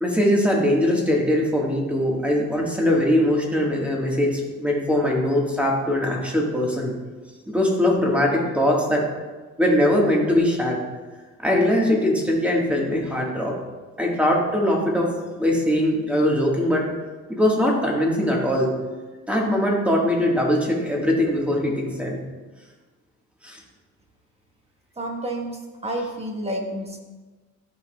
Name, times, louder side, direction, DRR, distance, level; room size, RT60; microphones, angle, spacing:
voice 1, 0.0-6.9 7.5-9.0 9.6-10.8 11.4-13.6 14.0-15.1 15.4-16.8 17.3-18.7 19.3-22.2 23.4-23.6, left 1 dB, 5° right, -2 dB, 1.7 m, -21 dB
voice 2, 25.0-27.0, right 1 dB, 20° right, 1 dB, 1.4 m, -30 dB
12.0 x 4.8 x 2.4 m, 1.3 s
cardioid pair, 90°, 30 cm